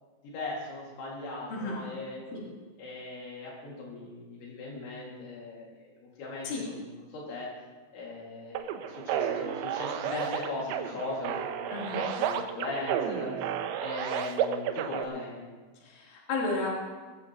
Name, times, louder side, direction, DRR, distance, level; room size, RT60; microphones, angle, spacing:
voice 1, 0.2-2.2 2.8-7.5 7.9-13.3 13.8-15.5, left 2 dB, 70° left, -4 dB, 4.5 m, -39 dB
sound 1, 8.6-15.1, right 9 dB, 80° right, 2.9 m, -32 dB
voice 2, 15.8-16.7, left 3 dB, 40° left, -5 dB, 4.3 m, -32 dB
20.5 x 15.0 x 3.0 m, 1.3 s
omnidirectional pair, 5.6 m